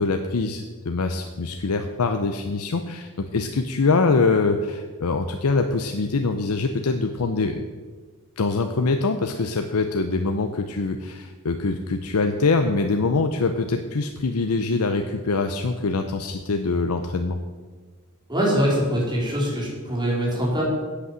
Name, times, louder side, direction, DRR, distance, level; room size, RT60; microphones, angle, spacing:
voice 1, 0.0-7.6 8.4-17.4, left 3 dB, 85° left, 6 dB, 0.7 m, -24 dB
voice 2, 18.3-20.6, equal, 20° right, -5 dB, 3.7 m, -23 dB
8.4 x 8.4 x 7.5 m, 1.4 s
head